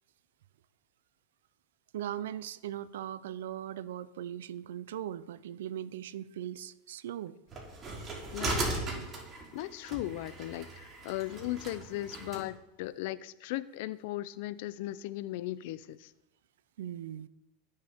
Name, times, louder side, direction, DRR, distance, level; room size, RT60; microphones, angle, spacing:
voice 1, 1.9-7.3 16.8-17.3, right 11 dB, 80° right, 17 dB, 0.5 m, -39 dB
sound 1, 7.5-12.4, right 2 dB, 30° right, 3.2 m, -37 dB
voice 2, 8.3-8.9 9.5-16.1, left 15 dB, 65° left, 16 dB, 0.5 m, -37 dB
16.5 x 6.7 x 3.6 m, 0.95 s
supercardioid pair, 115°, 0 cm